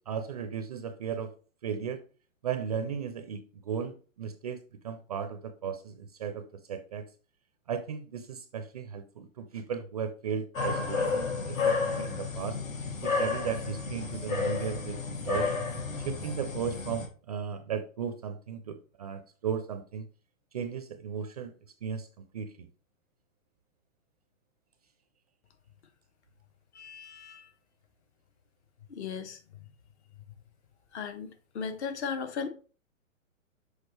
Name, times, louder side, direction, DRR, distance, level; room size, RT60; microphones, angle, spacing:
voice 1, 0.1-1.3 1.6-2.0 2.4-7.1 7.7-12.6 13.0-15.0 15.2-15.5 16.0-20.1 20.5-21.5 21.8-22.7, right 7 dB, 30° right, 0.4 m, -36 dB
sound 1, 10.5-17.1, left 4 dB, 75° left, 2.8 m, -31 dB
voice 2, 26.7-27.5 28.9-29.6 30.9-32.5, left 6 dB, 55° left, 1.3 m, -37 dB
6.3 x 4.9 x 3.2 m
hypercardioid pair, 140°, 41 cm